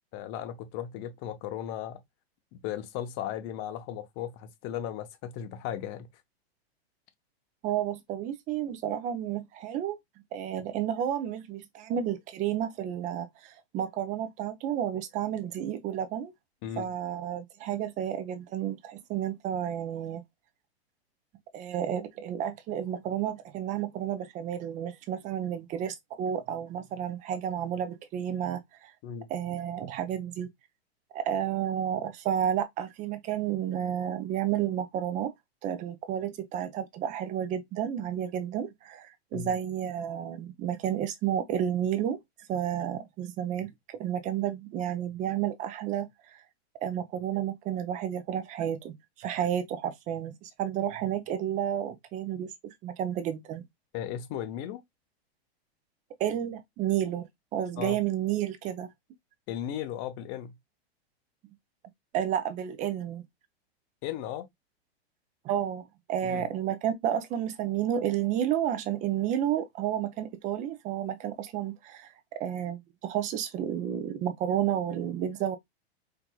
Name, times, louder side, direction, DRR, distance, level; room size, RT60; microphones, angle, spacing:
voice 1, 0.1-2.0 2.5-6.1 16.6-16.9 29.0-29.3 39.3-39.5 53.9-54.8 57.8-58.0 59.5-60.5 64.0-64.5 66.2-66.4, left 10 dB, 35° left, 0.7 m, -36 dB
voice 2, 7.6-10.0 10.3-16.3 16.8-20.2 21.5-28.9 29.3-30.5 31.1-35.3 35.6-42.2 42.5-46.4 46.8-53.6 56.2-58.9 62.1-63.2 65.4-65.8 66.1-72.1 72.4-75.6, right 10 dB, 25° right, 0.5 m, -31 dB
4.6 x 2.5 x 2.2 m
hypercardioid pair, 135°, 32 cm